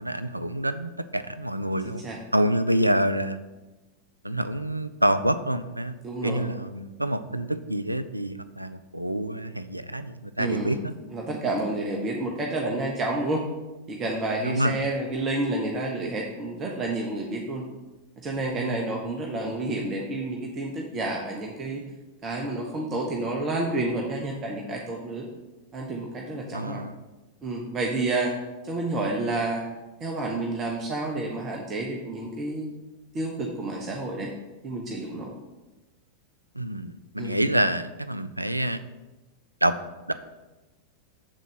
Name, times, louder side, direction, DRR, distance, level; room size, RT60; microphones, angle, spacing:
voice 1, 0.0-2.0 2.3-3.4 4.2-5.9 6.2-10.9 14.4-14.8 18.7-18.8 26.5-27.0 36.5-38.8 39.6-39.7 40.1-40.2, right 1 dB, 85° right, 12 dB, 0.3 m, -27 dB
voice 2, 1.8-2.2 6.0-6.5 10.4-10.8 11.1-13.4 13.9-17.6 18.2-21.8 22.2-25.3 25.7-26.8 27.4-28.3 28.6-29.6 30.0-32.7 33.1-34.3 34.6-35.3 37.2-37.4, right 2 dB, 25° right, 0 dB, 1.0 m, -29 dB
7.4 x 4.0 x 6.5 m, 1.1 s
figure-of-eight pair, 90°, 0 cm